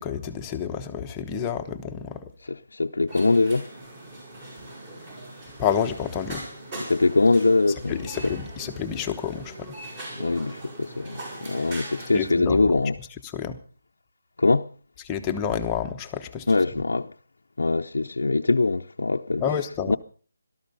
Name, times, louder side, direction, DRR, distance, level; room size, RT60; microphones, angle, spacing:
voice 1, 0.0-2.3 5.6-6.4 7.9-9.5 12.1-12.6 13.3-13.6 15.1-16.5 19.4-19.9, left 7 dB, 15° left, 1.1 m, -29 dB
voice 2, 2.4-3.7 6.8-8.3 10.2-13.0 14.4-14.7 16.5-17.1 17.6-19.4 19.9-20.0, left 3 dB, 85° left, 0.7 m, -23 dB
sound 1, 3.1-12.4, right 1 dB, 25° right, 6.8 m, -40 dB
18.0 x 13.0 x 5.4 m
hypercardioid pair, 170°, 0 cm